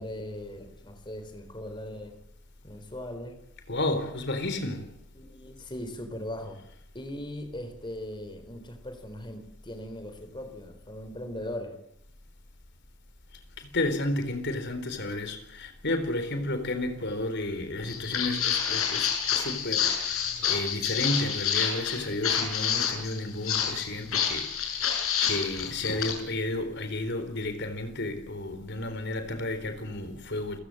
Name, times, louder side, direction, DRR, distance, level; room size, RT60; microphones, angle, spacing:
voice 1, 0.0-2.2 2.6-3.4 5.1-6.6 6.9-11.8, left 1 dB, 20° left, 4.0 m, -39 dB
voice 2, 3.7-4.9 13.6-24.9 25.2-30.6, left 2 dB, 50° left, 4.0 m, -32 dB
Walk footsteps, 17.8-26.1, left 8 dB, 70° left, 7.0 m, -28 dB
29.5 x 16.5 x 7.8 m
head